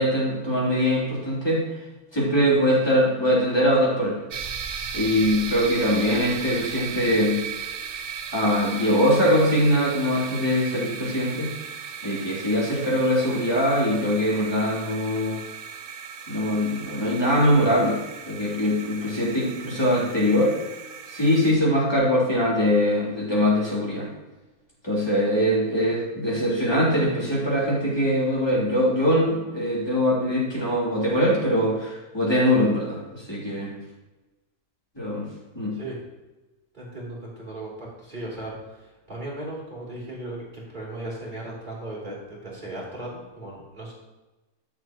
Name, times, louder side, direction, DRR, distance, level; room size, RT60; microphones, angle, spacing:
voice 1, 0.0-1.6 2.1-4.2 4.9-7.4 8.3-11.5 12.0-15.4 16.3-18.0 18.3-20.5 21.1-24.1 24.8-33.7 34.9-35.3 35.5-35.7, equal, 15° left, -6 dB, 3.2 m, -22 dB
sound 1, 4.3-21.5, right 7 dB, 55° right, 0.6 m, -36 dB
voice 2, 36.7-43.9, right 1 dB, 30° right, -6 dB, 3.5 m, -37 dB
12.0 x 7.2 x 3.0 m, 1.1 s
omnidirectional pair, 1.6 m